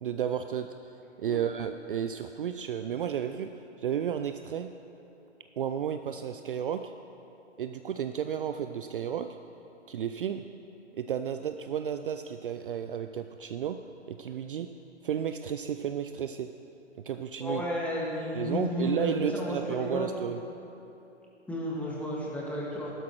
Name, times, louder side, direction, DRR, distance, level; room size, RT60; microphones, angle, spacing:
voice 1, 0.0-0.9 1.2-4.7 5.6-6.9 7.6-9.3 9.9-10.5 10.9-13.8 14.1-14.7 15.0-16.5 17.0-17.6 18.3-20.4, right 8 dB, 50° right, 8 dB, 0.4 m, -32 dB
voice 2, 17.4-20.1 21.5-22.9, left 1 dB, 5° left, -5 dB, 1.7 m, -32 dB
14.0 x 12.5 x 3.1 m, 3.0 s
figure-of-eight pair, 130°, 35 cm